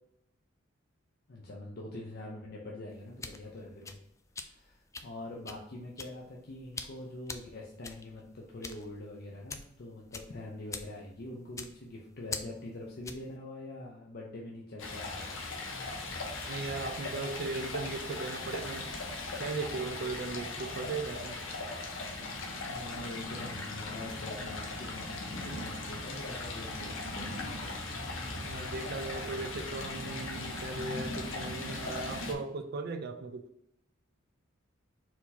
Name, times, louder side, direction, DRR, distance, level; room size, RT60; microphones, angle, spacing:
voice 1, 1.3-4.0 4.4-15.4 22.6-27.7, left 2 dB, 50° left, -3 dB, 0.7 m, -44 dB
sound 1, 2.9-13.3, left 4 dB, 15° left, 0.3 m, -45 dB
Stream, 14.8-32.3, left 2 dB, 75° left, 1.0 m, -38 dB
voice 2, 16.5-18.9 19.4-21.4 28.4-33.5, right 3 dB, 55° right, 6 dB, 0.4 m, -38 dB
4.4 x 2.7 x 4.0 m, 0.79 s
head